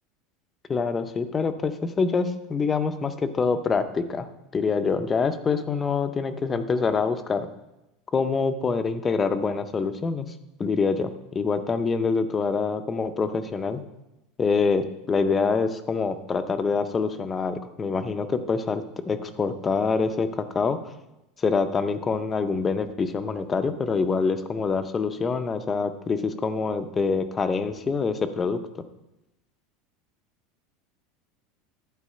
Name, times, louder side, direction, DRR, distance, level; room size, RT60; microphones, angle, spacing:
voice 1, 0.7-4.3 4.5-7.5 8.1-10.3 10.6-13.8 14.4-20.8 21.4-28.6, left 4 dB, 15° left, 10 dB, 0.5 m, -25 dB
11.5 x 4.6 x 7.4 m, 0.94 s
supercardioid pair, 180°, 0 cm